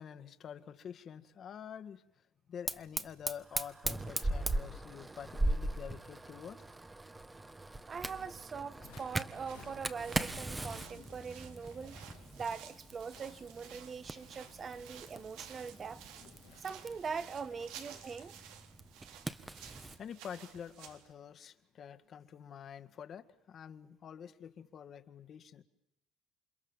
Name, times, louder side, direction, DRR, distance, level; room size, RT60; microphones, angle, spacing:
voice 1, 0.0-2.2 2.5-6.6 19.4-25.6, left 8 dB, 50° left, 1.8 m, -48 dB
Fire, 2.7-20.0, right 2 dB, 15° right, 1.4 m, -40 dB
voice 2, 7.9-12.0 12.4-16.0 16.6-18.3, right 5 dB, 35° right, 1.6 m, -42 dB
sound 1, 8.8-18.4, left 13 dB, 80° left, 1.9 m, -61 dB
sound 2, 9.3-21.1, right 8 dB, 80° right, 3.4 m, -54 dB
29.0 x 26.0 x 7.4 m
supercardioid pair, 95°, 0 cm